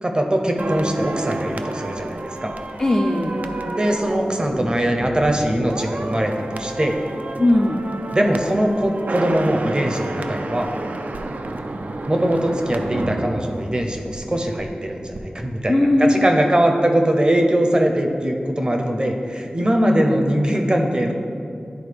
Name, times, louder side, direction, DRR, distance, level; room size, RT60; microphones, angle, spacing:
voice 1, 0.0-2.5 3.7-7.0 8.1-10.7 12.1-21.1, right 1 dB, 30° right, 3 dB, 0.7 m, -21 dB
sound 1, 0.6-14.7 15.0-15.2, right 2 dB, 65° right, 0.4 m, -30 dB
voice 2, 2.8-3.5 7.4-7.9 15.7-16.1 19.8-20.2, left 1 dB, 30° left, 1 dB, 0.4 m, -18 dB
10.5 x 3.9 x 3.4 m, 2.5 s
wide cardioid pair, 50°, 3 cm